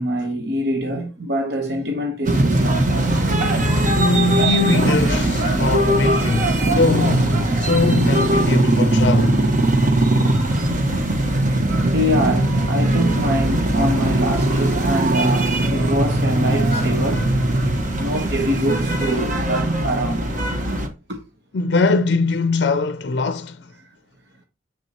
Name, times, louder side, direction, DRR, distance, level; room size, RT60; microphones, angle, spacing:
voice 1, 0.0-2.9 9.8-10.0 10.4-10.5 11.8-17.3 18.0-20.2 21.1-21.2, equal, 60° right, 1.1 m, -24 dB
sound 1, 2.2-20.9, right 1 dB, 45° right, 1.4 m, -19 dB
voice 2, 3.9-9.5 21.5-23.7, left 3 dB, 60° left, 0.5 m, -21 dB
7.1 x 7.1 x 2.9 m
head